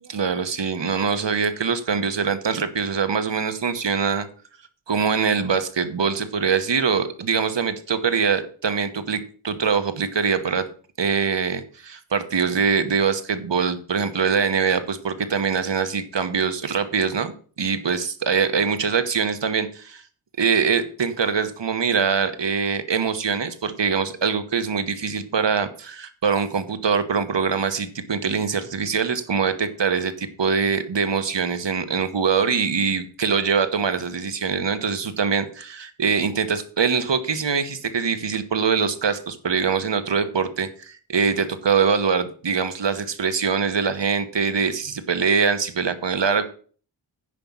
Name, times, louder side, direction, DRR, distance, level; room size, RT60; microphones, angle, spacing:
voice 1, 0.1-4.3 4.9-10.7 11.0-17.3 17.6-20.0 20.4-46.4, right 6 dB, 65° right, 10 dB, 1.2 m, -23 dB
9.8 x 5.3 x 7.2 m, 0.43 s
wide cardioid pair, 90°, 47 cm